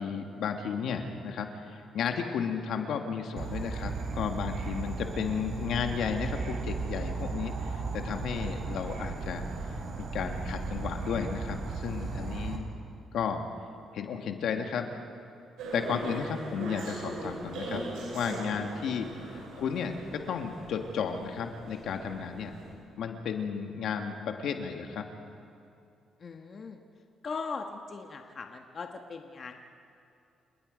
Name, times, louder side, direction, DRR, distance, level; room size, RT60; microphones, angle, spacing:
voice 1, 0.0-9.4 10.0-12.7 13.1-13.4 13.9-14.9 15.7-17.8 18.1-22.6 23.0-25.1, left 6 dB, 75° left, 5 dB, 1.8 m, -33 dB
Insect / Frog, 3.4-12.6, right 4 dB, 60° right, 3.2 m, -35 dB
sound 1, 15.6-22.7, right 2 dB, 90° right, 6.1 m, -40 dB
voice 2, 26.2-26.8 27.2-29.6, left 4 dB, 45° left, 4 dB, 1.4 m, -39 dB
29.5 x 19.0 x 5.2 m, 2.6 s
cardioid pair, 90°, 0 cm